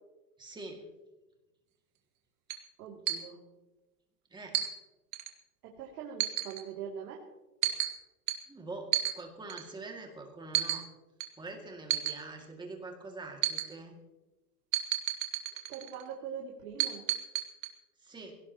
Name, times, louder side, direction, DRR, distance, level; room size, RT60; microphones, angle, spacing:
voice 1, 0.4-0.9 4.3-4.7 8.4-10.8 11.4-14.0 18.0-18.4, right 3 dB, 10° right, 2 dB, 2.3 m, -44 dB
sound 1, 2.5-2.6 3.1-3.2 4.5-4.7 5.1-5.3 6.2-6.6 7.6-7.9 8.3-8.4 8.9-9.1 9.5-9.7 10.5-10.8 11.2-11.3 11.9-12.1 13.4-13.7 14.7-16.0 16.8-17.7, right 12 dB, 35° right, 1.7 m, -31 dB
voice 2, 2.8-3.4 5.6-7.2 15.5-17.0, right 7 dB, 75° right, -1 dB, 2.8 m, -43 dB
22.5 x 17.5 x 3.0 m, 1.1 s
supercardioid pair, 150°, 46 cm